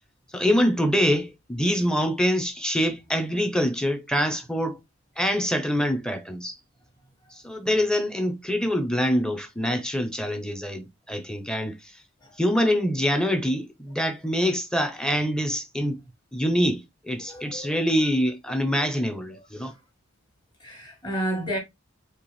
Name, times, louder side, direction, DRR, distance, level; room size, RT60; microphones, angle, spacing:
voice 1, 0.3-4.8 5.2-6.5 7.3-12.0 12.4-16.0 16.3-19.7, equal, 5° left, 0.7 m, -25 dB
voice 2, 17.2-17.8 18.8-18.9 19.6-19.8 20.6-21.6, right 1 dB, 20° left, 1.5 m, -32 dB
4.5 x 3.3 x 3.2 m
head